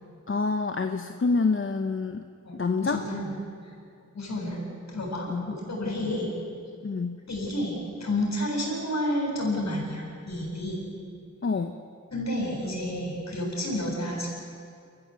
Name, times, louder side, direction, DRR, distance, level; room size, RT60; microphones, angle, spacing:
voice 1, 0.3-2.2 2.5-3.0 5.3-5.5 5.9-6.0 6.8-7.2 11.4-11.8, left 4 dB, 45° left, 6 dB, 1.0 m, -27 dB
voice 2, 2.4-3.3 4.1-4.6 4.9-6.3 7.3-10.8 12.1-14.3, left 1 dB, 60° left, -2 dB, 7.9 m, -30 dB
28.0 x 15.0 x 8.3 m, 2.2 s
wide cardioid pair, 95°, 30 cm